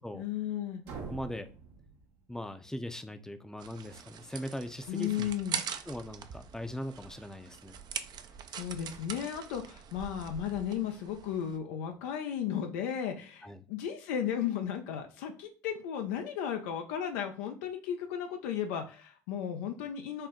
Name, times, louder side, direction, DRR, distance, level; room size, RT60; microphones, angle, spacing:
voice 1, 0.1-0.8 4.9-5.6 8.5-20.3, left 9 dB, 80° left, 5 dB, 0.5 m, -35 dB
sound 1, 0.8-2.7, right 5 dB, 80° right, 1.0 m, -45 dB
voice 2, 1.1-1.5 2.3-5.3 5.9-7.7 13.4-13.6, left 1 dB, 5° left, 9 dB, 0.5 m, -40 dB
sound 2, 3.6-11.6, right 8 dB, 50° right, 0.5 m, -43 dB
4.3 x 2.1 x 3.6 m, 0.35 s
hypercardioid pair, 70°, 9 cm